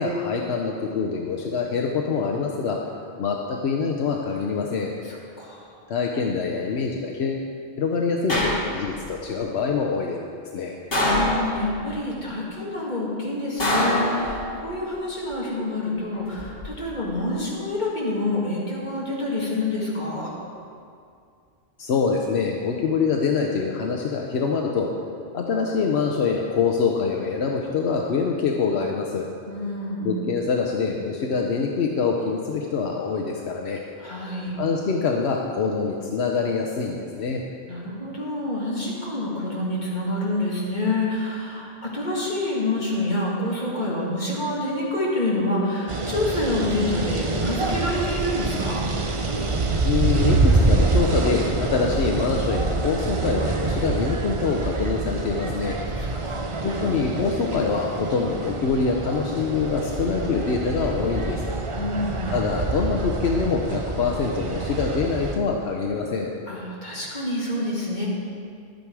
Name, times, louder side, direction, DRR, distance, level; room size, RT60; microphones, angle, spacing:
voice 1, 0.0-2.8 3.2-4.9 5.9-7.5 7.8-10.2 10.5-10.7 21.8-24.9 25.3-29.2 30.0-33.8 34.6-37.4 49.8-55.8 56.6-61.5 62.3-66.3, left 5 dB, 80° left, 1 dB, 1.0 m, -25 dB
voice 2, 5.0-5.7 11.1-20.3 29.5-30.3 34.0-34.6 37.7-48.8 56.0-56.6 61.8-62.3 66.5-68.1, left 1 dB, 45° left, -6 dB, 2.5 m, -27 dB
sound 1, 8.3-9.1 10.9-11.9 13.6-14.7 16.1-16.7, left 1 dB, 65° left, 2.3 m, -24 dB
sound 2, 45.9-65.4, right 3 dB, 35° right, 0.6 m, -26 dB
11.5 x 9.1 x 4.7 m, 2.3 s
omnidirectional pair, 1.1 m